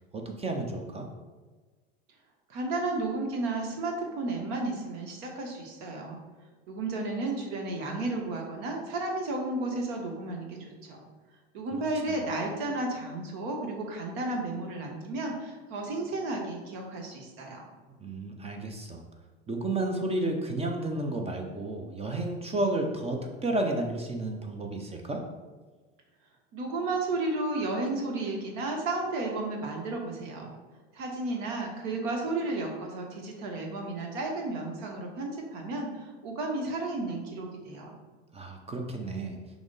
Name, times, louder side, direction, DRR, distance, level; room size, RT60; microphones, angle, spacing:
voice 1, 0.1-1.1 11.7-11.8 18.0-19.0 19.5-25.2 38.3-39.4, right 2 dB, 20° right, 2 dB, 0.6 m, -32 dB
voice 2, 2.5-6.2 6.7-11.0 11.5-17.6 26.5-30.5 30.9-38.0, right 2 dB, 60° right, 1 dB, 1.0 m, -33 dB
6.0 x 2.0 x 4.0 m, 1.3 s
hypercardioid pair, 85°, 31 cm